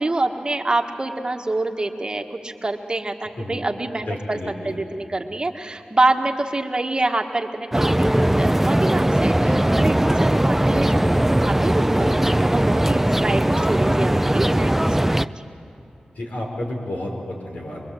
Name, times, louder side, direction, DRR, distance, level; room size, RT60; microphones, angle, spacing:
voice 1, 0.0-4.4 4.6-15.3, right 2 dB, 35° right, 4 dB, 1.5 m, -26 dB
voice 2, 4.1-4.9 9.5-9.9 16.1-17.8, left 1 dB, 80° left, 0 dB, 4.8 m, -31 dB
sound 1, 7.7-15.3, right 1 dB, 10° right, 0.5 m, -19 dB
23.5 x 23.5 x 7.8 m, 2.9 s
cardioid pair, 60°, 3 cm